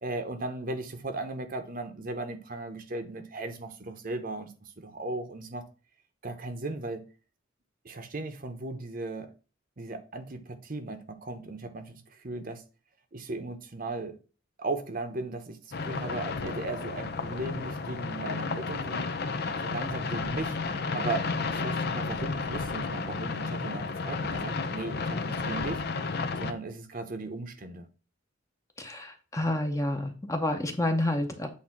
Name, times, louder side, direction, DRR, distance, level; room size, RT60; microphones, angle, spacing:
voice 1, 0.0-5.6 6.2-7.1 7.8-9.3 9.8-12.6 13.1-14.2 14.6-19.3 19.6-20.6 20.9-25.8 26.4-27.9, right 2 dB, 45° right, 0.9 m, -37 dB
sound 1, 15.7-26.5, left 4 dB, 55° left, 0.6 m, -32 dB
voice 2, 28.8-31.5, left 1 dB, 15° left, 0.9 m, -29 dB
8.5 x 2.8 x 5.8 m
head